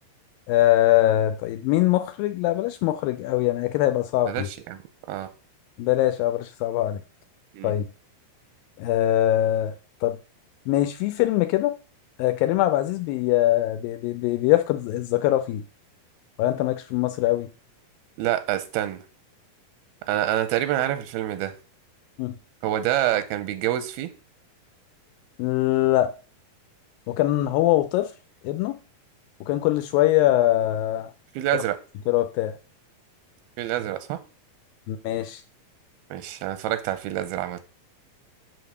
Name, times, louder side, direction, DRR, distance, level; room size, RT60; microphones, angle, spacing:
voice 1, 0.5-4.5 5.8-7.0 7.6-7.9 8.8-9.7 10.0-10.2 10.7-11.7 12.2-15.6 16.4-17.5 22.2-22.4 25.4-26.1 27.1-28.1 28.4-28.8 29.5-31.1 31.5-31.6 32.1-32.6 34.9-35.4, left 14 dB, 80° left, 8 dB, 2.2 m, -22 dB
voice 2, 4.3-4.8 5.1-5.3 7.5-7.7 18.2-19.0 20.1-21.5 22.6-24.1 31.4-31.8 33.6-34.2 36.1-37.6, right 13 dB, 90° right, 10 dB, 2.6 m, -26 dB
7.8 x 3.9 x 6.7 m, 0.35 s
omnidirectional pair, 4.2 m